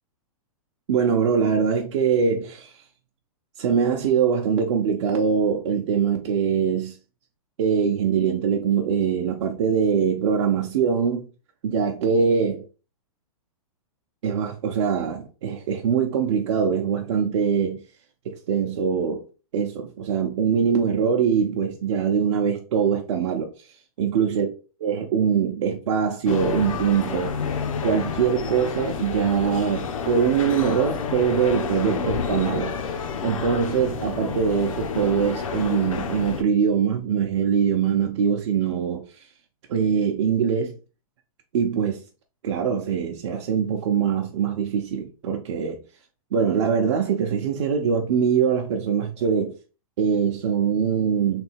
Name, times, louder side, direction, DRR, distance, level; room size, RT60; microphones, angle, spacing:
voice 1, 0.9-2.7 3.6-6.9 7.6-11.3 11.6-12.6 14.2-17.8 18.2-19.2 19.5-24.5 24.8-27.3 27.8-32.7 33.2-39.0 39.7-40.7 41.5-42.0 42.4-45.8 46.3-49.6 50.0-51.4, right 7 dB, 50° right, 0.7 m, -23 dB
sound 1, 26.3-36.4, left 6 dB, 65° left, 0.7 m, -29 dB
3.3 x 2.7 x 4.4 m
hypercardioid pair, 165°, 19 cm